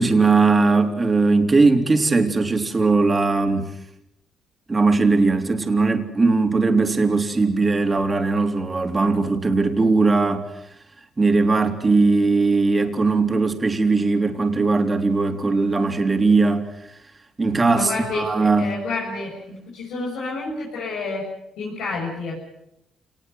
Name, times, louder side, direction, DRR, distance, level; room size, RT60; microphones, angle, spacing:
voice 1, 0.0-3.7 4.7-10.4 11.2-17.0 17.4-18.7, right 3 dB, 25° right, 3.5 m, -19 dB
voice 2, 17.7-18.3 18.6-21.3 21.6-22.4, left 3 dB, 85° left, 7.2 m, -29 dB
28.5 x 19.5 x 8.0 m
cardioid pair, 90°, 0 cm